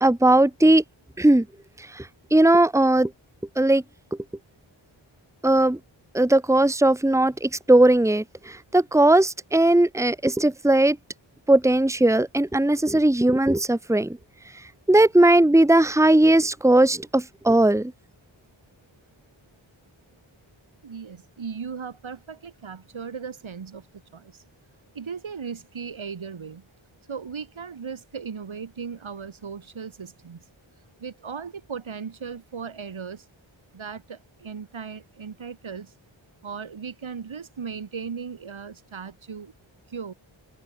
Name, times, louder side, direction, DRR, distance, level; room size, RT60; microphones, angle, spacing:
voice 1, 0.0-0.8 1.2-1.4 1.8-3.1 3.5-3.8 5.4-5.8 6.1-11.0 11.5-14.2 14.9-17.9, right 1 dB, 5° right, 1.5 m, -18 dB
voice 2, 20.8-24.4 24.9-26.7 27.1-30.4 31.0-33.3 33.7-35.9 36.4-39.5 39.9-40.1, right 6 dB, 80° right, 3.7 m, -37 dB
wide cardioid pair, 65°, 47 cm